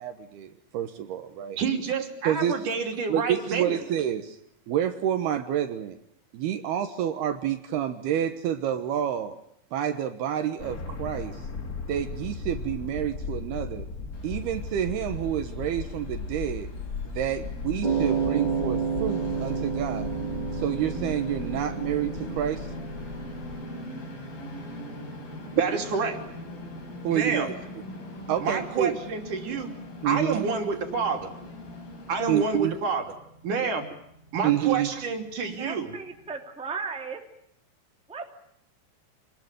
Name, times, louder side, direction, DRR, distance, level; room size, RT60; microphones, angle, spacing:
voice 1, 0.0-1.6 2.3-2.7 3.1-4.4 4.7-6.0 6.3-9.4 9.7-11.4 11.9-13.9 14.2-16.7 17.1-20.1 20.5-22.7 27.0-27.5 28.3-29.0 30.0-30.4 32.3-32.7 34.4-35.0, right 10 dB, 75° right, 8 dB, 3.1 m, -28 dB
voice 2, 1.6-3.8 25.5-26.2 27.1-27.5 28.4-29.7 30.0-31.3 32.1-33.0 33.4-33.8 34.3-35.9, right 5 dB, 50° right, 4 dB, 4.3 m, -28 dB
sound 1, 10.6-23.6, left 5 dB, 40° left, 1.2 m, -37 dB
Train, 14.1-32.6, left 2 dB, 60° left, 6.5 m, -42 dB
sound 2, 17.8-36.1, right 6 dB, 25° right, 1.0 m, -34 dB
voice 3, 35.6-37.2 38.1-38.2, right 5 dB, ahead, 3 dB, 2.0 m, -35 dB
27.0 x 20.0 x 9.3 m, 0.72 s
omnidirectional pair, 4.9 m